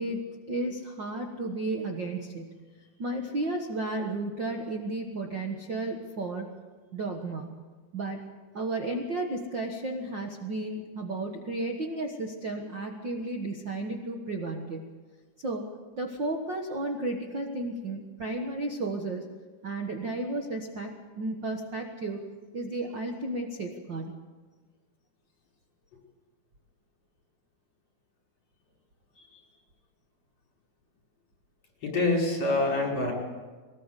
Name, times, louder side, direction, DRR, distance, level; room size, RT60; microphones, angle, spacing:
voice 1, 0.0-2.6 3.0-6.5 6.9-7.5 7.9-8.2 8.5-14.9 15.4-15.6 16.0-19.2 19.6-22.2 22.5-24.1, right 2 dB, 75° right, 2 dB, 1.0 m, -33 dB
voice 2, 31.8-33.1, left 2 dB, 40° left, -1 dB, 6.4 m, -26 dB
22.5 x 19.0 x 8.2 m, 1.4 s
omnidirectional pair, 4.6 m